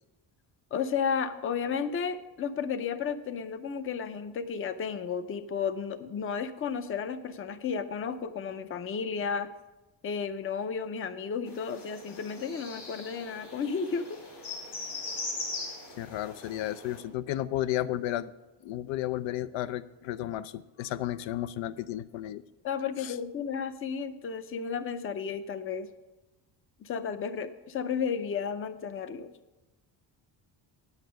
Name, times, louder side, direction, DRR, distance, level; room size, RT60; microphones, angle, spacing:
voice 1, 0.7-9.5 10.0-14.2 22.6-25.9 26.8-29.3, left 6 dB, 30° left, 12 dB, 0.5 m, -33 dB
sound 1, 11.5-17.0, left 3 dB, 60° left, 3.8 m, -40 dB
voice 2, 16.0-18.3 18.6-22.4 23.0-23.1, left 13 dB, 85° left, 15 dB, 0.5 m, -33 dB
9.2 x 8.1 x 5.2 m, 1.1 s
cardioid pair, 150°, 44 cm